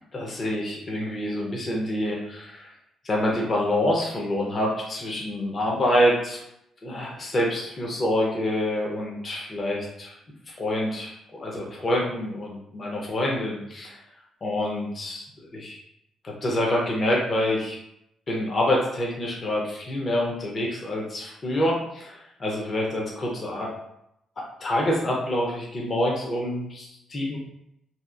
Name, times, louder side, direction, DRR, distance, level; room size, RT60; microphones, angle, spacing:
voice 1, 0.1-2.7 3.0-6.4 6.8-10.1 10.5-14.0 14.4-15.3 15.5-15.8 16.2-17.8 18.3-23.7 24.6-27.4, left 1 dB, 40° left, -2 dB, 0.7 m, -26 dB
2.7 x 2.5 x 2.4 m, 0.80 s
cardioid pair, 90°, 0 cm